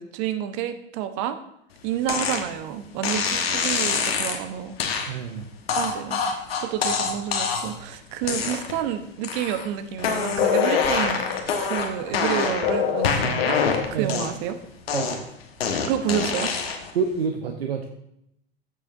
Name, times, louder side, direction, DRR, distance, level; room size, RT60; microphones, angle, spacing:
voice 1, 0.0-1.4 1.8-4.8 5.7-11.2 11.7-13.6 13.9-14.6 15.9-16.5, right 10 dB, 50° right, 10 dB, 1.0 m, -29 dB
sound 1, 2.1-2.4 3.0-4.4 4.8-5.1 5.7-7.8 8.2-8.9 9.2-9.7 10.0-12.7 13.0-14.5 14.9-16.9, left 5 dB, 75° left, 1.4 m, -26 dB
voice 2, 5.1-5.4 13.9-14.1 14.9-15.2 16.9-17.9, right 6 dB, 75° right, 5 dB, 0.8 m, -27 dB
sound 2, 10.4-14.1, left 8 dB, 50° left, 2.2 m, -25 dB
14.0 x 6.8 x 2.6 m, 0.78 s
figure-of-eight pair, 80°, 30 cm